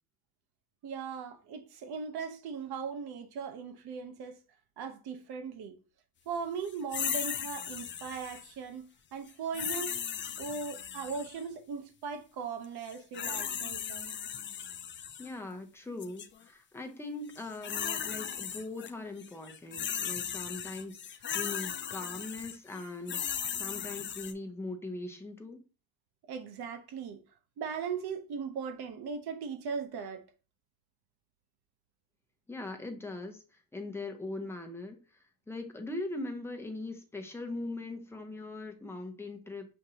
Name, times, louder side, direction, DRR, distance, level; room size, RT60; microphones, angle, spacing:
voice 1, 0.8-4.3 4.8-5.7 6.3-8.8 9.1-9.9 10.4-14.1 26.3-27.2 27.6-30.2, right 5 dB, 70° right, 0.8 m, -38 dB
sound 1, 6.9-8.5 9.5-11.4 12.9-15.3 16.0-16.3 17.3-18.9 19.2-24.3, left 8 dB, 30° left, 0.4 m, -37 dB
voice 2, 15.2-25.6 32.5-35.0 35.5-39.7, left 2 dB, 5° left, 0.7 m, -41 dB
6.5 x 2.6 x 2.8 m
cardioid pair, 130°, 39 cm